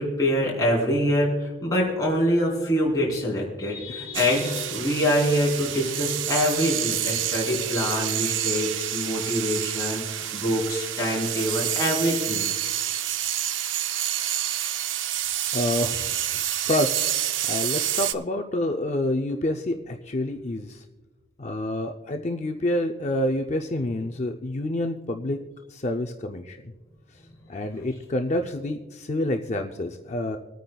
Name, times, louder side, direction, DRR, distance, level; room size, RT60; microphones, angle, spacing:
voice 1, 0.0-12.5, equal, 20° left, -4 dB, 3.4 m, -25 dB
sound 1, 4.1-18.1, right 11 dB, 80° right, 0.5 m, -28 dB
voice 2, 15.5-16.2 16.7-17.2 17.5-20.8 21.4-25.4 25.7-26.7 27.5-30.4, left 1 dB, 35° left, 4 dB, 0.5 m, -28 dB
26.0 x 9.2 x 2.3 m, 1.2 s
head